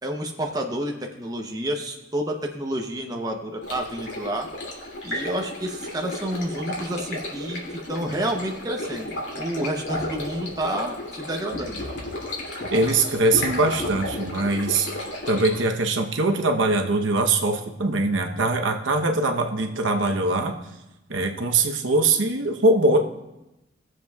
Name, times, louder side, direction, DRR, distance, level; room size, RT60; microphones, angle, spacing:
voice 1, 0.0-4.5 5.0-7.6 7.9-11.8, right 1 dB, 20° right, 2 dB, 0.7 m, -29 dB
Stream, 3.6-15.6, left 1 dB, 65° left, 2.6 m, -33 dB
voice 2, 12.7-14.9 15.3-20.5 21.1-23.0, right 2 dB, 80° right, 4 dB, 0.9 m, -22 dB
22.0 x 7.3 x 2.3 m, 0.97 s
head